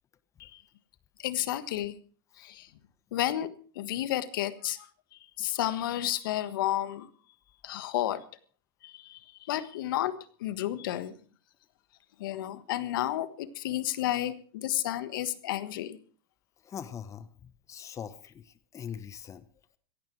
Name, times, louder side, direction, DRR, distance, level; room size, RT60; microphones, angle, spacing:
voice 1, 1.2-2.0 2.4-2.7 3.1-3.5 3.7-7.1 7.6-8.2 8.8-11.1 12.2-16.0, left 13 dB, 70° left, 14 dB, 1.4 m, -32 dB
voice 2, 16.6-19.4, left 8 dB, 25° left, 15 dB, 1.1 m, -42 dB
16.5 x 15.5 x 4.7 m, 0.41 s
hypercardioid pair, 105°, 12 cm